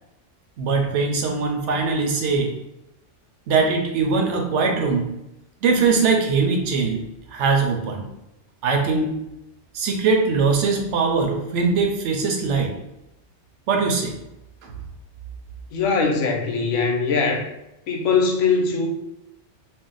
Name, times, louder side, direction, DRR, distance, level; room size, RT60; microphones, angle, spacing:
voice 1, 0.6-2.5 3.5-5.1 5.6-8.1 8.6-9.1 9.7-12.7 13.7-14.1 14.6-14.7, right 4 dB, 75° right, 2 dB, 0.9 m, -21 dB
voice 2, 15.7-17.5 17.9-18.9, left 4 dB, 85° left, 2 dB, 0.9 m, -21 dB
2.6 x 2.0 x 3.8 m, 0.89 s
omnidirectional pair, 1.2 m